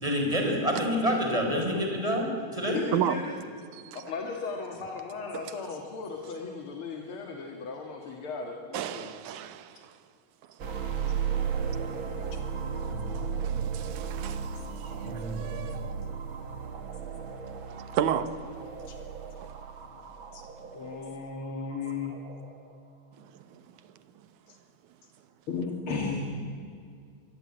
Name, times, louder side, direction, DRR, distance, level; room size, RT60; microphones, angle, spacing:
voice 1, 0.0-2.2 2.5-2.8, equal, 10° right, 4.9 m, -27 dB
voice 2, 1.7-2.2 12.3-12.4 12.9-13.7 15.0-15.8 18.9-19.0 20.3-20.5 26.0-26.2, left 1 dB, 75° left, 4.4 m, -42 dB
voice 3, 2.5-3.4 4.1-9.1 20.7-22.2 25.5-26.2, left 4 dB, 45° left, 2.4 m, -36 dB
voice 4, 3.7-4.0 5.3-5.4 8.7-9.9 12.3-12.4 13.1-15.8 17.7-18.6 23.2-23.6, right 9 dB, 75° right, 2.4 m, -33 dB
sound 1, 10.6-22.8, right 6 dB, 45° right, 2.0 m, -35 dB
24.5 x 20.5 x 8.8 m
omnidirectional pair, 3.7 m